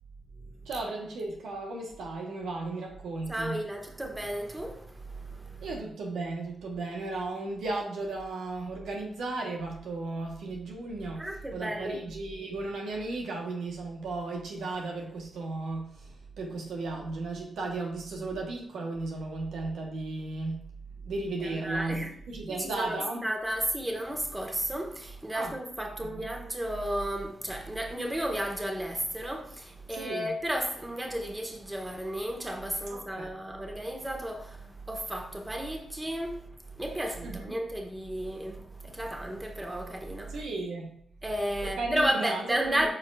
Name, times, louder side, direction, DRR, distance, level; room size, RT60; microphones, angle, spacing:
voice 1, 0.6-3.6 5.6-20.7 21.0-23.3 25.3-25.5 26.0-26.3 29.9-30.3 32.9-33.4 37.2-37.6 40.3-41.0 41.6-42.9, right 2 dB, 80° right, 1.2 m, -35 dB
voice 2, 3.3-5.6 11.2-12.0 21.5-22.1 22.5-40.4 41.2-42.9, right 1 dB, 15° right, 1.5 m, -33 dB
8.1 x 4.8 x 2.5 m
supercardioid pair, 50°, 0 cm